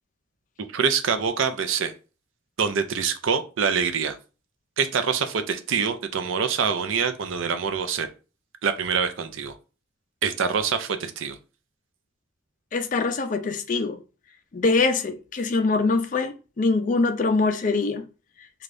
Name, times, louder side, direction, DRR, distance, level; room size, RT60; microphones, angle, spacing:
voice 1, 0.6-1.9 2.6-4.2 4.8-8.1 8.6-9.5 10.2-11.4, right 6 dB, 75° right, 0.5 m, -25 dB
voice 2, 12.7-14.0 14.5-18.0, left 3 dB, 40° left, 0.4 m, -23 dB
4.9 x 2.3 x 2.6 m
head